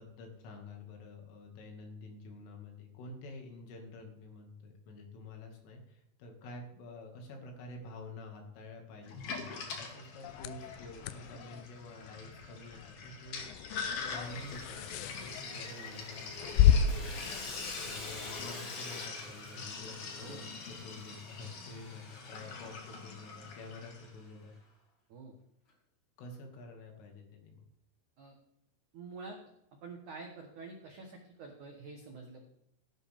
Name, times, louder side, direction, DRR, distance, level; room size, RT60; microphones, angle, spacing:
voice 1, 0.0-13.8 14.1-17.1 17.8-24.5 26.2-27.6, left 2 dB, 75° left, 2 dB, 4.8 m, -49 dB
Sink (filling or washing), 9.1-24.1, left 5 dB, 55° left, 2.7 m, -44 dB
sound 1, 10.2-18.6, left 9 dB, 90° left, 2.5 m, -33 dB
Sawing, 14.0-24.3, left 2 dB, 35° left, 2.2 m, -48 dB
voice 2, 15.7-16.1 20.2-20.5 25.1-25.4 28.2-28.3 28.9-29.4 29.8-32.4, right 4 dB, 80° right, 2 dB, 1.7 m, -47 dB
17.0 x 11.0 x 3.6 m, 0.85 s
omnidirectional pair, 5.9 m